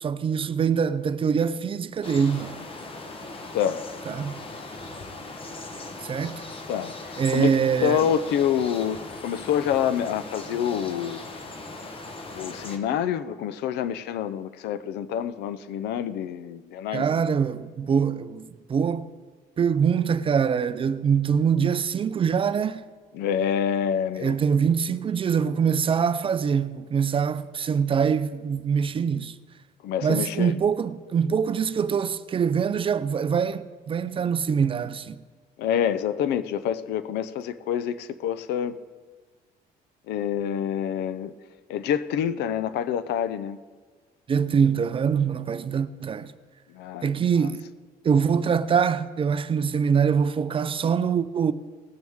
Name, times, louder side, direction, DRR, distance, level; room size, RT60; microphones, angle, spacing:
voice 1, 0.0-2.6 4.1-4.4 6.0-6.4 7.2-8.1 16.9-19.1 19.6-22.8 24.2-29.4 30.0-35.2 44.3-46.3 47.0-47.7 48.0-51.5, right 6 dB, 30° right, 0.5 m, -24 dB
sound 1, 2.0-12.8, left 2 dB, 35° left, 1.2 m, -39 dB
voice 2, 3.5-3.8 6.7-7.5 7.8-11.3 12.3-17.2 23.1-24.4 29.8-30.6 35.6-38.8 40.1-41.3 41.7-43.6 46.7-47.5, left 9 dB, 80° left, 0.6 m, -27 dB
19.0 x 9.3 x 3.6 m
cardioid pair, 110°, 17 cm